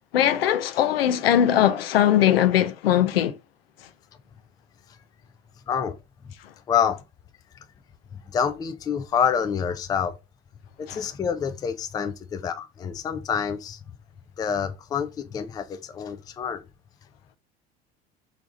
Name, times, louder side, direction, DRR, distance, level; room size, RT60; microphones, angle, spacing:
voice 1, 0.1-3.4 10.9-11.0, left 11 dB, 70° left, 0.5 m, -20 dB
voice 2, 5.7-6.0 6.2-6.3 6.7-7.0 8.3-10.2 10.8-13.8 14.4-16.6, left 7 dB, 15° left, 0.3 m, -27 dB
3.4 x 2.6 x 3.8 m
figure-of-eight pair, 70°, 31 cm